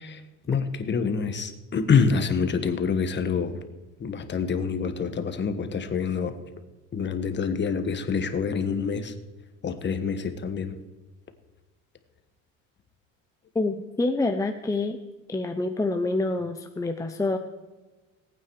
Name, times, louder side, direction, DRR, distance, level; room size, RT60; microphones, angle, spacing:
voice 1, 0.5-3.6 4.0-6.3 6.9-9.1 9.6-10.8, left 5 dB, 35° left, 8 dB, 1.4 m, -26 dB
voice 2, 13.5-15.0 15.3-17.4, left 2 dB, 10° left, 5 dB, 0.7 m, -27 dB
19.0 x 9.0 x 4.8 m, 1.2 s
cardioid pair, 115°, 33 cm